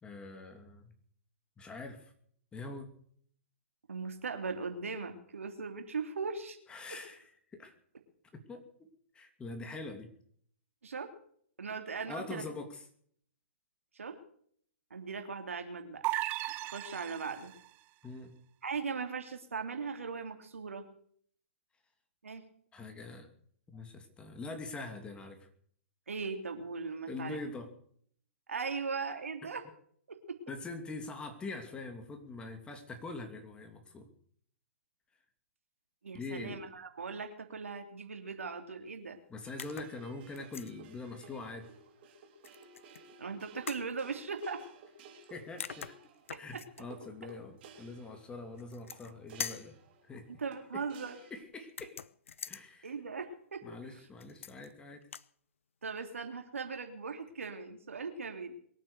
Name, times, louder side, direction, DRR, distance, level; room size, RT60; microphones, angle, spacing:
voice 1, 0.0-0.9 1.6-2.1 2.5-2.9 6.7-7.2 7.5-7.7 8.3-8.7 9.1-10.1 12.1-12.8 18.0-18.4 22.7-23.3 23.7-25.5 27.1-27.7 30.5-34.1 36.1-36.6 39.3-41.7 45.3-46.0 46.3-49.8 50.1-50.3 50.7-50.9 51.3-52.0 52.5-52.9 53.6-55.0, left 3 dB, 15° left, 6 dB, 2.7 m, -43 dB
voice 2, 3.9-6.6 10.8-11.1 11.6-12.4 13.9-14.2 14.9-16.0 16.6-17.5 18.6-20.8 22.2-22.5 26.1-27.4 28.5-29.6 30.1-30.4 36.0-39.2 43.2-44.6 46.3-46.6 50.3-51.2 52.8-53.6 55.8-58.5, right 5 dB, 80° right, 6 dB, 3.1 m, -39 dB
sound 1, 16.0-17.7, right 17 dB, 30° right, 0.8 m, -36 dB
sound 2, 39.4-51.4, right 3 dB, 45° right, 3.3 m, -56 dB
sound 3, 39.6-40.0 40.3-40.7 42.4-43.0 43.7-43.9 45.2-45.3 45.6-46.8 48.6-49.1 49.4-49.7 51.7-52.6 54.2-54.7 55.0-55.3, left 7 dB, 70° left, 0.8 m, -43 dB
22.5 x 9.2 x 6.6 m, 0.62 s
hypercardioid pair, 125°, 7 cm